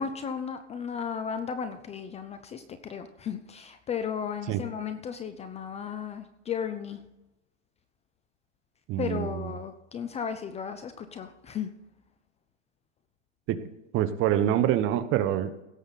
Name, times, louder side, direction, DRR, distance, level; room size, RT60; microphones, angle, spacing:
voice 1, 0.0-7.0 9.0-11.7, left 7 dB, 15° left, 10 dB, 0.5 m, -35 dB
voice 2, 8.9-9.5 13.5-13.6 13.9-15.5, right 11 dB, 35° right, 11 dB, 0.9 m, -26 dB
17.0 x 7.1 x 4.1 m, 0.94 s
supercardioid pair, 135°, 37 cm